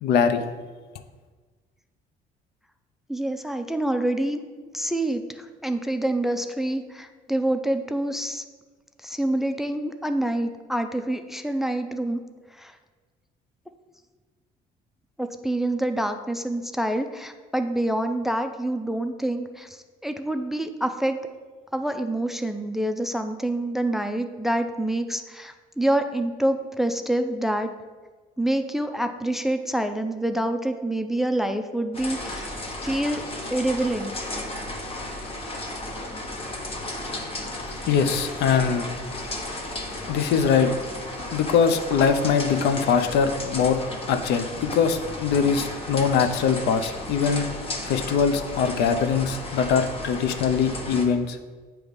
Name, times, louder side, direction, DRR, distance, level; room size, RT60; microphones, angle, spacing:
voice 1, 0.0-0.4 37.9-38.9 40.1-40.7 41.3-43.8 44.1-47.5 47.8-51.4, left 6 dB, 80° left, 9 dB, 0.6 m, -22 dB
voice 2, 3.1-4.4 4.7-8.4 9.0-12.2 12.6-12.7 15.2-21.2 21.7-27.7 28.4-32.5 32.8-34.4 38.8-38.9, right 1 dB, ahead, 7 dB, 0.4 m, -27 dB
sound 1, 31.9-51.0, left 1 dB, 35° left, 1.1 m, -34 dB
7.9 x 3.0 x 5.1 m, 1.4 s
cardioid pair, 110°, 17 cm